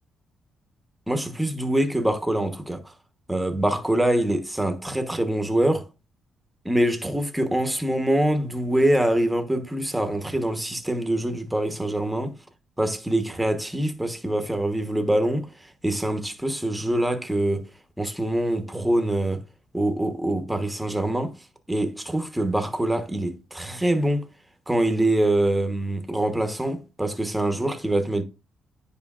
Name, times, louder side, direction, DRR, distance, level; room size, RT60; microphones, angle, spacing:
voice 1, 1.1-2.8 3.3-5.9 6.6-12.4 12.8-15.5 15.8-17.7 18.0-19.4 19.7-21.3 21.7-24.3 24.7-28.2, right 1 dB, 5° right, 1.1 m, -24 dB
9.5 x 5.1 x 2.4 m
cardioid pair, 90°, 0 cm